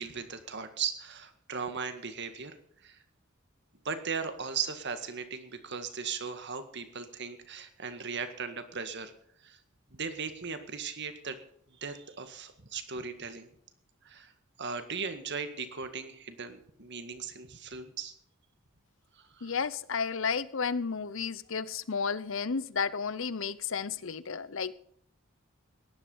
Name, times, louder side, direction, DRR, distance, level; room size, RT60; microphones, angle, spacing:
voice 1, 0.0-2.6 2.8-3.0 3.9-9.1 9.4-9.6 9.9-11.4 11.8-13.5 14.0-14.3 14.6-18.1 19.2-19.6, right 5 dB, 55° right, 9 dB, 1.9 m, -38 dB
voice 2, 19.4-24.7, left 5 dB, 65° left, 17 dB, 0.8 m, -32 dB
17.0 x 11.0 x 5.5 m, 0.66 s
head